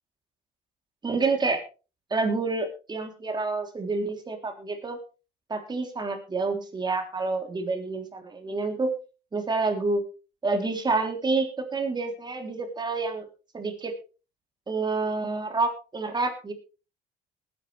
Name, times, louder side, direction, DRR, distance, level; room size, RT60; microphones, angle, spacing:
voice 1, 1.0-1.6 2.1-5.0 5.5-8.9 9.3-10.0 10.4-13.3 13.5-13.9 14.7-16.5, right 3 dB, 25° right, 4 dB, 3.5 m, -28 dB
20.0 x 10.0 x 3.4 m, 0.34 s
cardioid pair, 110°, 17 cm